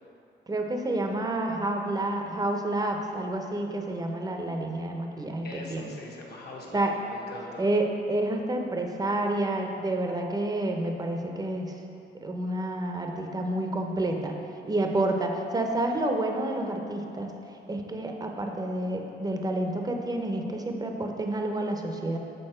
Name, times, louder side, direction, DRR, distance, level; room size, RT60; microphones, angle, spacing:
voice 1, 0.5-5.9 6.7-6.9 7.6-11.7 12.2-14.3 14.7-17.3 17.7-22.2, right 1 dB, 20° right, 3 dB, 0.7 m, -29 dB
voice 2, 5.4-7.6, left 1 dB, 55° left, -2 dB, 1.2 m, -41 dB
6.7 x 4.1 x 4.3 m, 2.7 s
cardioid pair, 90°, 20 cm